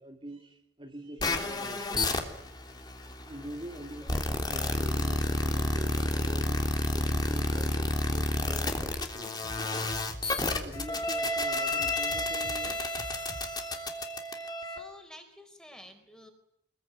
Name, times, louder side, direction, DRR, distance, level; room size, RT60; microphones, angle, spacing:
voice 1, 0.0-2.1 3.3-9.4 10.4-12.8, equal, 30° right, 1 dB, 2.7 m, -45 dB
sound 1, 1.2-14.8, left 1 dB, 20° left, 3.2 m, -31 dB
sound 2, 6.7-7.8 8.2-11.3 11.6-13.5, left 1 dB, 55° left, 4.1 m, -46 dB
voice 2, 14.6-16.3, left 1 dB, 5° left, 5 dB, 4.7 m, -51 dB
26.5 x 21.5 x 9.7 m, 0.73 s
head